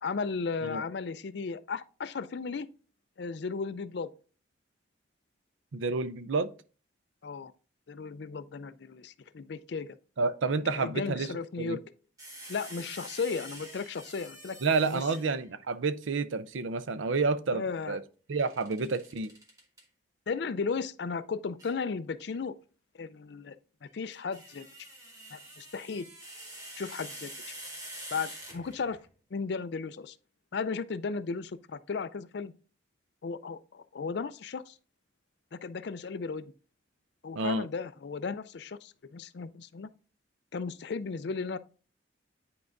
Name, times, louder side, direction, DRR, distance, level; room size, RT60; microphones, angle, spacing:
voice 1, 0.0-2.7 3.2-4.1 7.2-7.5 7.9-10.0 10.8-11.8 12.5-15.0 17.5-18.0 20.3-22.5 23.0-23.6 23.8-24.7 25.3-26.1 26.8-27.3 28.1-29.0 29.3-30.2 30.5-32.5 33.2-34.8 35.5-36.5 37.2-39.9 40.5-41.6, left 5 dB, 60° left, 0.4 m, -35 dB
voice 2, 5.7-6.5 10.2-11.3 11.6-11.8 14.6-18.0 18.3-19.3 37.4-37.7, right 4 dB, 85° right, 0.5 m, -29 dB
sound 1, 12.2-15.5 18.4-19.8 21.6-21.8 23.9-29.0, right 1 dB, 20° right, 1.4 m, -46 dB
9.7 x 4.7 x 2.6 m
head